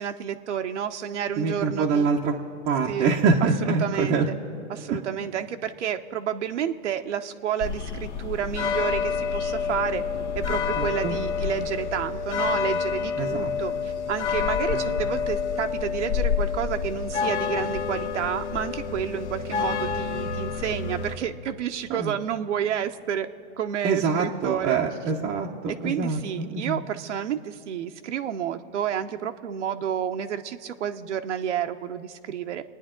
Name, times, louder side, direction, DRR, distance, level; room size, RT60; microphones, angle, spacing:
voice 1, 0.0-2.1 2.9-3.1 3.8-4.2 4.7-10.0 10.3-23.3 23.6-24.8 25.7-32.6, right 9 dB, 80° right, 6 dB, 0.8 m, -30 dB
voice 2, 1.4-2.4 2.7-4.3 4.9-5.0 10.8-11.2 13.2-13.5 14.7-14.9 21.9-22.1 23.8-26.8, right 4 dB, 20° right, -2 dB, 0.6 m, -25 dB
sound 1, 7.6-21.2, left 6 dB, 70° left, 1.4 m, -28 dB
28.5 x 9.7 x 3.8 m, 2.6 s
hypercardioid pair, 145°, 35 cm